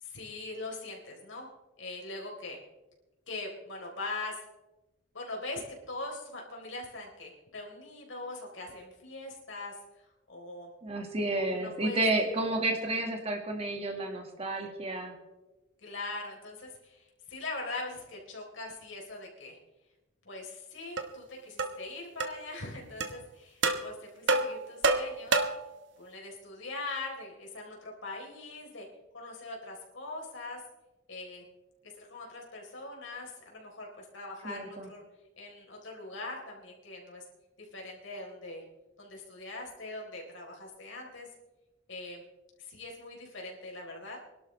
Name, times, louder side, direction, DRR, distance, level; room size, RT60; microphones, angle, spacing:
voice 1, 0.0-1.5 1.8-2.6 3.3-4.4 5.1-10.7 11.5-12.7 15.8-19.6 20.2-25.4 26.0-28.9 29.1-30.6 31.1-31.4 31.8-35.0 35.4-37.2 37.6-38.6 39.0-41.3 41.9-42.2 42.6-44.2, left 2 dB, 75° left, -1 dB, 3.9 m, -42 dB
voice 2, 10.8-15.1 34.4-34.9, right 2 dB, 30° right, 2 dB, 1.8 m, -31 dB
sound 1, 21.0-21.1 21.6-21.8 22.2-22.3 23.0-23.1 23.6-23.8 24.3-25.7, right 3 dB, 65° right, 1.2 m, -27 dB
25.0 x 12.0 x 3.3 m, 1.1 s
head